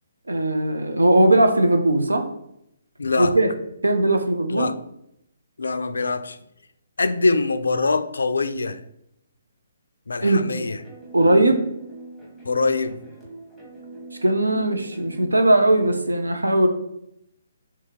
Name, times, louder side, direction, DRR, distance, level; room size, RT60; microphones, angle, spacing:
voice 1, 0.3-2.2 3.2-3.5 3.8-4.7 10.2-10.5 11.1-11.6 14.2-16.7, right 1 dB, 85° right, 6 dB, 0.5 m, -19 dB
voice 2, 3.0-3.3 4.5-4.8 5.6-6.4 7.0-8.8 10.1-10.8 12.5-13.0, left 3 dB, 75° left, 11 dB, 0.3 m, -23 dB
sound 1, 10.5-15.9, right 2 dB, 5° right, 1.1 m, -42 dB
2.8 x 2.8 x 3.5 m, 0.77 s
figure-of-eight pair, 140°, 0 cm